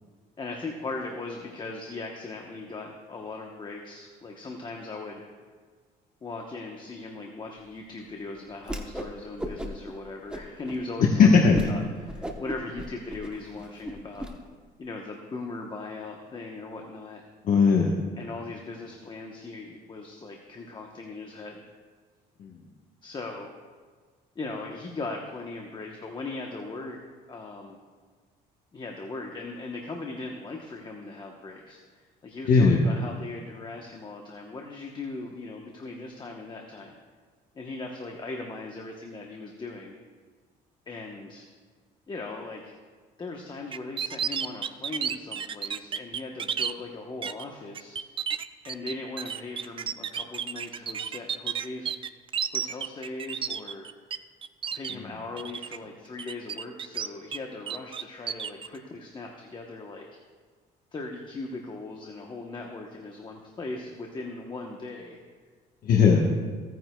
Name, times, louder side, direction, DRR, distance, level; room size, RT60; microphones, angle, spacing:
voice 1, 0.4-5.2 6.2-14.3 14.8-17.2 18.2-21.6 23.0-23.5 24.3-27.0 27.3-27.8 28.7-37.0 37.5-40.0 40.9-41.5 42.1-42.7 43.2-48.0 48.6-51.9 52.5-53.9 54.7-60.1 60.9-65.2, left 3 dB, 25° left, 1 dB, 1.0 m, -39 dB
Whoosh swoosh swish, 8.6-9.1 9.4-9.9 10.3-10.8 11.2-11.3 11.5-11.7 12.1-14.3, equal, 5° right, 0.9 m, -36 dB
voice 2, 11.2-11.7 17.4-18.0 22.4-22.5 32.5-32.9 65.8-66.3, left 5 dB, 55° left, -1 dB, 1.1 m, -18 dB
sound 1, 43.7-46.7 47.2-47.4 47.7-54.2 54.4-54.9 55.4-55.8 56.2-57.4 57.7-58.7, right 7 dB, 30° right, 0.4 m, -32 dB
16.5 x 9.2 x 2.3 m, 1.5 s
cardioid pair, 110°, 17 cm